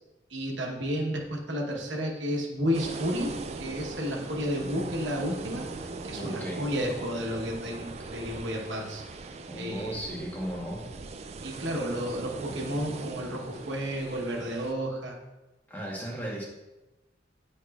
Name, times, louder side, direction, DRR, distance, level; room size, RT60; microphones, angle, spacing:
voice 1, 0.3-9.0 9.6-10.0 11.4-15.2, equal, 80° right, 0 dB, 1.1 m, -32 dB
sound 1, 2.7-14.7, right 3 dB, 35° right, 0.3 m, -40 dB
voice 2, 4.5-4.9 6.2-6.7 9.5-10.9 15.7-16.5, right 1 dB, 10° left, -3 dB, 1.1 m, -36 dB
8.8 x 4.7 x 2.4 m, 1.0 s
head